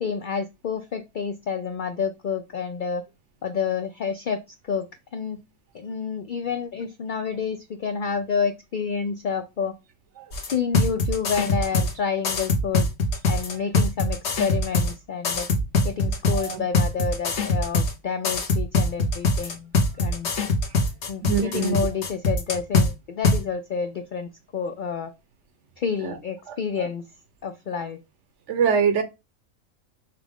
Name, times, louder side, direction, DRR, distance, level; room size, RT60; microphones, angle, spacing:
voice 1, 0.0-3.0 3.4-4.4 4.7-5.4 5.7-9.7 10.5-12.9 13.3-15.5 15.8-19.7 20.0-20.3 21.1-25.1 25.8-27.1 27.4-28.0, left 6 dB, 85° left, 0.4 m, -29 dB
sound 1, 10.3-11.9 12.2-14.9 15.2-17.9 18.2-22.9 23.2-23.4, left 2 dB, 60° left, 1.2 m, -22 dB
voice 2, 16.3-16.6 21.2-21.8 26.0-26.2 26.5-26.9 28.5-29.0, right 6 dB, 65° right, 1.1 m, -24 dB
5.8 x 2.4 x 3.5 m
omnidirectional pair, 1.4 m